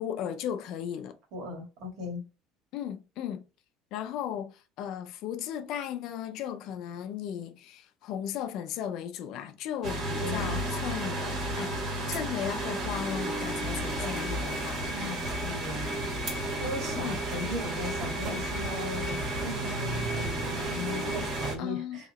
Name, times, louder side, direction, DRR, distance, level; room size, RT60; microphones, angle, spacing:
voice 1, 0.0-1.2 2.7-3.4 3.9-11.3 11.6-11.7 12.1-14.9 17.0-17.2 21.6-22.0, left 9 dB, 55° left, 0.5 m, -36 dB
voice 2, 1.3-2.3 10.2-10.6 14.9-15.9 16.6-22.1, left 1 dB, 60° right, 2.0 m, -37 dB
sound 1, 9.8-21.5, right 1 dB, 40° right, 1.7 m, -32 dB
3.8 x 2.9 x 4.1 m
cardioid pair, 155°, 0 cm